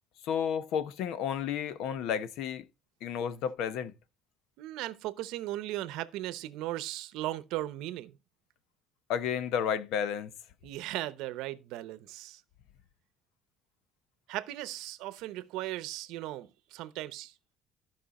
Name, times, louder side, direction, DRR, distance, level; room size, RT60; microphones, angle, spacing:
voice 1, 0.2-2.6 3.0-3.9 9.1-10.3, left 8 dB, 65° left, 0.9 m, -32 dB
voice 2, 4.6-8.1 10.6-12.4 14.3-17.3, right 15 dB, 80° right, 0.8 m, -37 dB
14.0 x 5.5 x 4.2 m
cardioid pair, 170°, 0 cm